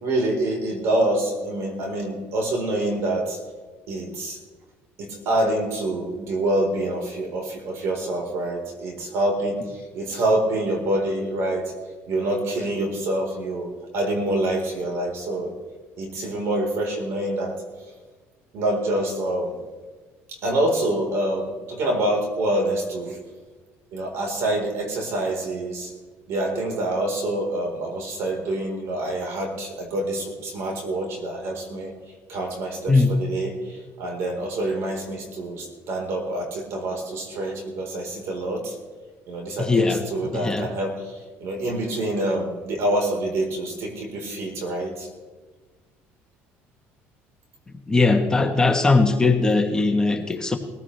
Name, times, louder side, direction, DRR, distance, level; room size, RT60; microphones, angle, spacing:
voice 1, 0.0-3.4 3.9-4.4 5.0-11.7 12.1-15.5 16.0-17.6 18.5-19.6 20.4-23.2 23.9-25.9 26.3-31.9 32.3-38.7 39.3-45.1, right 1 dB, 65° right, 1 dB, 4.2 m, -26 dB
voice 2, 32.9-33.2 39.6-40.0 40.3-40.7 47.9-50.6, left 3 dB, 15° left, 4 dB, 1.3 m, -19 dB
20.5 x 15.0 x 3.4 m, 1.3 s
cardioid pair, 110°, 5 cm